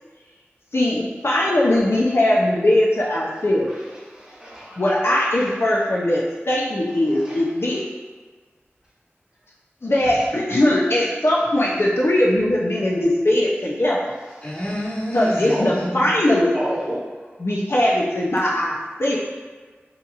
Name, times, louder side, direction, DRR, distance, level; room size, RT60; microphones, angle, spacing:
voice 1, 0.7-3.8 4.8-7.8 9.8-14.0 15.1-16.6 17.4-19.2, left 1 dB, 65° left, -5 dB, 0.6 m, -20 dB
voice 2, 3.7-4.8 5.4-5.5 7.1-7.4 10.0-10.1 14.4-14.6 15.5-15.8 16.5-17.1, equal, 20° right, -8 dB, 1.0 m, -31 dB
voice 3, 14.4-16.1, equal, 25° left, -4 dB, 0.8 m, -28 dB
2.8 x 2.5 x 3.9 m, 1.4 s
wide cardioid pair, 50°, 5 cm